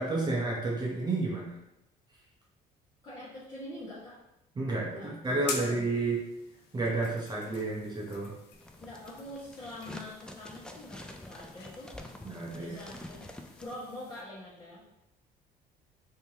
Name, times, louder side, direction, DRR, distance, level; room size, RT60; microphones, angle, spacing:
voice 1, 0.0-1.6 4.6-6.2 6.7-8.4 12.2-12.8, right 2 dB, 25° right, -4 dB, 0.7 m, -31 dB
voice 2, 3.0-4.2 4.9-5.9 8.8-11.9 12.6-13.2 13.6-14.8, left 1 dB, 25° left, -11 dB, 1.2 m, -45 dB
sound 1, 5.2-14.2, left 5 dB, 75° left, 0.6 m, -46 dB
sound 2, 8.5-13.8, left 1 dB, 5° left, 0.3 m, -47 dB
3.4 x 2.8 x 2.8 m, 0.87 s
cardioid pair, 110°, 17 cm